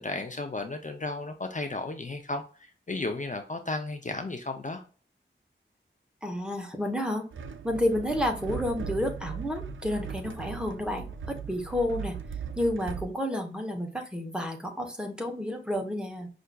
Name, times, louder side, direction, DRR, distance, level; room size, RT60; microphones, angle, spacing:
voice 1, 0.0-4.8, left 2 dB, 40° left, 6 dB, 0.4 m, -34 dB
voice 2, 6.2-7.2 7.6-11.1 11.5-12.2 12.6-16.3, left 1 dB, 5° right, 2 dB, 0.8 m, -30 dB
sound 1, 7.3-13.1, right 7 dB, 85° right, 0.4 m, -38 dB
5.5 x 2.5 x 2.2 m, 0.39 s
wide cardioid pair, 75°, 20 cm